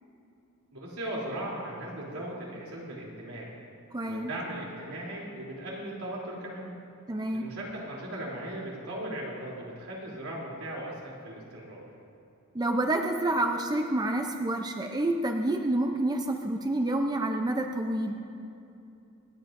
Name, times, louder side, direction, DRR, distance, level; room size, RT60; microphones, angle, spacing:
voice 1, 0.7-3.5 4.0-6.8 7.3-11.8, right 1 dB, 80° right, -4 dB, 3.2 m, -38 dB
voice 2, 3.9-4.3 7.1-7.5 12.5-18.2, right 1 dB, 20° right, 3 dB, 0.5 m, -28 dB
26.0 x 10.5 x 2.6 m, 2.7 s
head